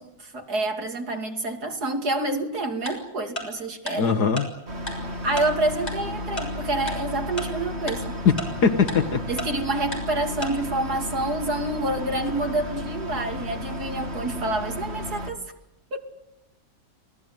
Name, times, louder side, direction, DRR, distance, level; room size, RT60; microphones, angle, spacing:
voice 1, 0.0-4.1 4.9-8.2 9.3-15.4 15.9-16.0, right 2 dB, 50° right, 4 dB, 3.3 m, -28 dB
Tick-tock, 2.9-3.0 3.4-3.5 3.9-4.0 4.4-4.5 4.9-5.0 5.4-5.5 5.9-6.0 6.4-6.5 6.9-7.0 7.4-7.5 7.9-8.0 8.4-8.5 8.9-9.0 9.4-9.5 9.9-10.0 10.4-10.5, left 1 dB, 20° left, 6.9 m, -31 dB
voice 2, 4.0-4.5 8.3-8.4 8.6-9.3, left 5 dB, 60° left, 10 dB, 1.8 m, -20 dB
sound 1, 4.7-15.3, left 1 dB, 35° right, 2.7 m, -33 dB
29.0 x 18.5 x 9.2 m, 0.91 s
omnidirectional pair, 2.1 m